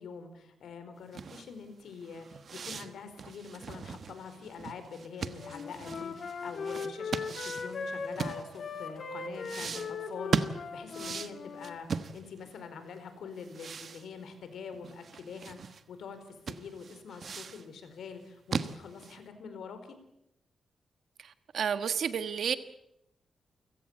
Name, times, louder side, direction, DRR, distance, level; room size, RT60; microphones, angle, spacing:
voice 1, 0.0-20.0, left 5 dB, 75° left, 9 dB, 4.5 m, -45 dB
sound 1, 1.1-8.9 9.4-12.6 12.9-13.0 13.4-15.8 16.1-16.2 16.5-17.7 18.1-19.3, right 5 dB, 45° right, 1.2 m, -38 dB
Wind instrument woodwind instrument, 5.4-11.8, left 5 dB, 45° left, 2.9 m, -39 dB
voice 2, 21.2-22.6, right 7 dB, 60° right, 11 dB, 1.4 m, -31 dB
29.5 x 16.5 x 8.7 m, 0.82 s
wide cardioid pair, 170°, 0 cm